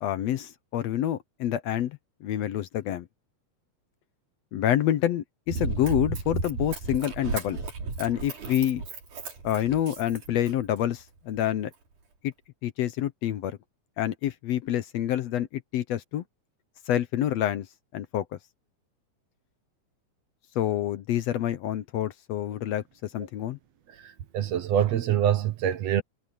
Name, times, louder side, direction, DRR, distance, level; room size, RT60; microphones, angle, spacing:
voice 1, 0.0-3.1 4.5-7.6 8.0-8.8 9.4-11.7 12.2-12.3 12.6-13.6 14.0-16.2 16.9-17.7 17.9-18.3 20.6-23.6, left 11 dB, 70° left, 1.8 m, -27 dB
Run, 5.5-10.8 11.4-11.5, right 4 dB, 90° right, 5.7 m, -34 dB
voice 2, 23.9-26.0, right 10 dB, 65° right, 2.3 m, -25 dB
omnidirectional pair, 3.4 m